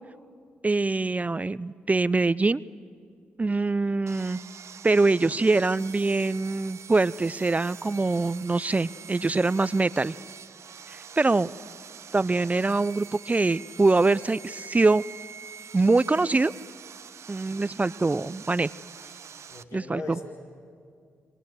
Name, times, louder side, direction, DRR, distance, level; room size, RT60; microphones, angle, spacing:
voice 1, 0.6-2.6 3.4-4.4 4.8-10.1 10.9-11.5 12.1-15.0 15.7-16.5 17.3-18.7 19.7-20.2, right 3 dB, 25° right, 18 dB, 0.6 m, -24 dB
Sawing, 4.1-19.6, right 7 dB, 60° right, 1.0 m, -45 dB
voice 2, 19.5-20.2, left 2 dB, 70° left, -1 dB, 5.2 m, -40 dB
28.5 x 24.5 x 7.8 m, 2.1 s
hypercardioid pair, 40°, 5 cm